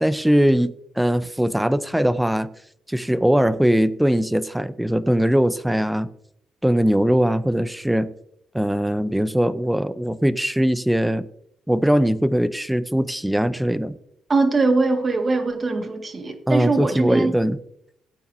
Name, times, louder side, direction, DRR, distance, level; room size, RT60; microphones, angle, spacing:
voice 1, 0.0-2.5 2.9-6.1 6.6-8.1 8.5-11.3 11.7-14.0 16.5-17.6, equal, 5° right, 14 dB, 0.7 m, -20 dB
voice 2, 14.3-17.3, right 3 dB, 35° right, 5 dB, 2.0 m, -21 dB
16.5 x 9.0 x 2.8 m, 0.72 s
cardioid pair, 90°, 0 cm